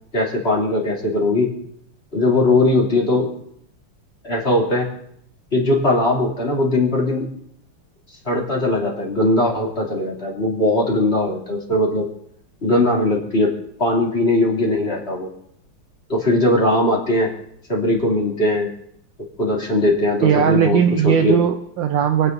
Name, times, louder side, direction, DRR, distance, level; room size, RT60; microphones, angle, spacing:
voice 1, 0.1-1.5 2.1-3.3 4.2-4.9 5.5-7.3 8.2-12.1 12.6-13.5 13.8-15.3 16.1-17.3 17.7-18.7 19.4-21.4, left 1 dB, 30° left, -3 dB, 3.2 m, -19 dB
voice 2, 20.2-22.3, right 8 dB, 75° right, 6 dB, 1.3 m, -18 dB
29.5 x 10.0 x 2.7 m, 0.71 s
omnidirectional pair, 2.3 m